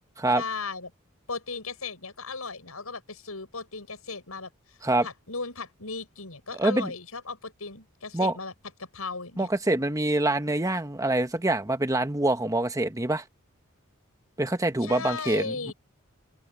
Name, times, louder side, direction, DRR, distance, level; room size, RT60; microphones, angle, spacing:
voice 1, 0.3-0.9 1.3-4.5 5.0-8.5 8.8-9.5 14.8-15.7, left 4 dB, 80° left, 7.7 m, -36 dB
voice 2, 6.5-6.9 8.1-8.3 9.4-13.2 14.4-15.7, right 2 dB, 15° right, 1.2 m, -25 dB
head